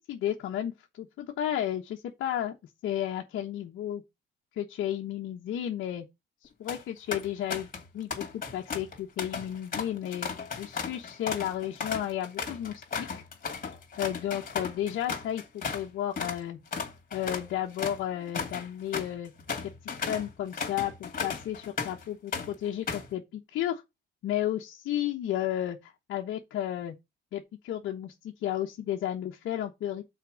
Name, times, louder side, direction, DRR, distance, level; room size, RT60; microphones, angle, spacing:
voice 1, 0.1-2.5 2.8-4.0 4.6-6.0 6.6-7.7 7.9-13.2 14.0-16.6 17.1-19.3 19.8-23.8 24.2-26.9 27.3-30.0, left 11 dB, 75° left, 1.2 m, -33 dB
sound 1, 6.5-6.8 7.1-7.8 8.1-15.9 16.2-16.4 16.7-22.0 22.3-23.1, left 5 dB, 45° left, 2.5 m, -35 dB
5.9 x 4.6 x 6.4 m
cardioid pair, 80°, 20 cm